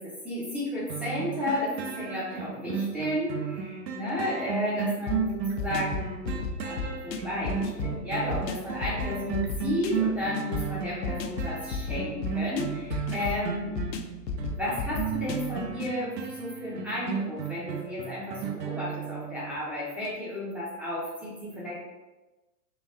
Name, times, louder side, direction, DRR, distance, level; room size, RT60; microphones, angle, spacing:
voice 1, 0.0-13.8 14.6-21.8, left 1 dB, 5° right, -7 dB, 0.6 m, -33 dB
sound 1, 0.9-19.6 20.0-20.1, right 7 dB, 80° right, 0.7 m, -33 dB
sound 2, 5.1-15.9, left 4 dB, 80° left, 0.6 m, -35 dB
4.0 x 2.2 x 3.5 m, 1.1 s
hypercardioid pair, 120°, 50 cm